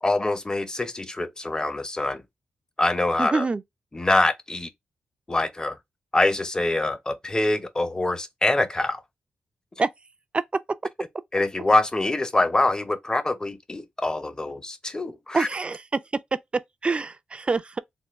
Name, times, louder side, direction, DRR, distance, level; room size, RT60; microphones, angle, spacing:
voice 1, 0.0-2.2 2.8-3.5 3.9-4.7 5.3-5.8 6.1-9.0 11.3-15.5, left 2 dB, 25° left, 0.7 m, -24 dB
voice 2, 3.2-3.6 9.8-9.9 15.3-15.8 16.8-17.8, right 4 dB, 35° right, 0.4 m, -25 dB
3.6 x 2.1 x 3.0 m
cardioid pair, 55°, 3 cm